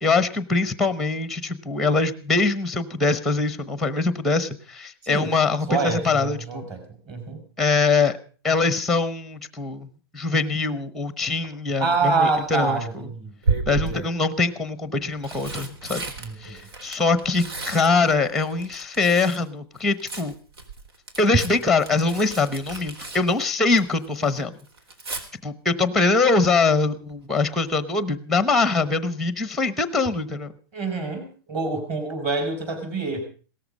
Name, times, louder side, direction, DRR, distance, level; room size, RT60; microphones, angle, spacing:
voice 1, 0.0-6.7 7.6-8.2 8.4-12.8 13.7-16.0 16.4-20.3 21.2-24.5 25.4-30.5, left 3 dB, ahead, 14 dB, 0.9 m, -23 dB
voice 2, 5.7-7.4 11.8-14.0 16.2-16.7 30.7-33.2, right 4 dB, 25° right, 6 dB, 4.8 m, -27 dB
Tearing, 11.9-12.4 13.4-14.2 15.0-19.5 19.8-24.1 24.4-25.2 27.1-27.4 27.7-27.8, right 4 dB, 80° right, 4.0 m, -33 dB
18.0 x 13.5 x 5.4 m, 0.40 s
hypercardioid pair, 175°, 13 cm